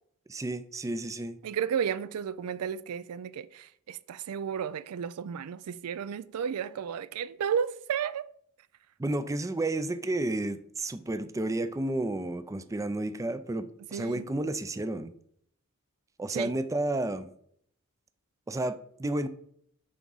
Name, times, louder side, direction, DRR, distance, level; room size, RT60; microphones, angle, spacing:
voice 1, 0.3-1.4 9.0-15.1 16.2-17.3 18.5-19.3, right 2 dB, 15° right, 0.4 m, -31 dB
voice 2, 1.4-8.3 13.9-14.3 16.3-16.5, right 8 dB, 85° right, 0.4 m, -33 dB
8.5 x 3.6 x 5.4 m
head